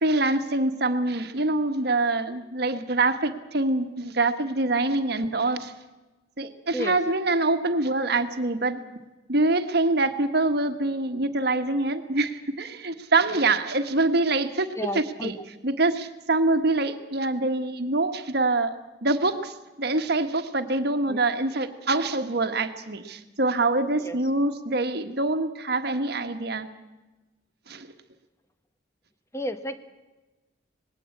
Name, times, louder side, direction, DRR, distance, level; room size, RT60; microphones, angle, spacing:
voice 1, 0.0-5.7 6.4-8.8 9.3-15.4 15.6-18.8 19.0-26.7 27.7-27.9, right 2 dB, 60° right, 8 dB, 1.5 m, -25 dB
voice 2, 14.8-15.3 21.1-21.2 24.0-24.2 29.3-29.8, left 1 dB, 15° left, 10 dB, 1.2 m, -31 dB
20.0 x 17.0 x 8.5 m, 1.1 s
head